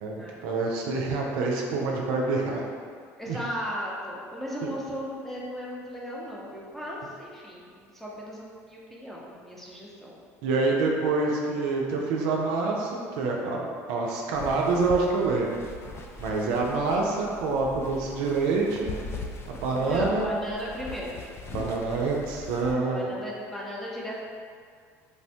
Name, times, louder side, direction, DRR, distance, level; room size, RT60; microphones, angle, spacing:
voice 1, 0.0-2.6 3.3-3.4 10.4-15.5 16.2-19.0 19.5-20.3 21.5-23.1, right 3 dB, 75° right, -1 dB, 0.4 m, -26 dB
voice 2, 3.2-10.2 19.8-21.3 22.9-24.2, equal, 5° left, -5 dB, 0.6 m, -36 dB
sound 1, 14.3-22.7, left 3 dB, 35° left, 0.3 m, -41 dB
3.2 x 2.1 x 2.7 m, 2.1 s
supercardioid pair, 85°, 7 cm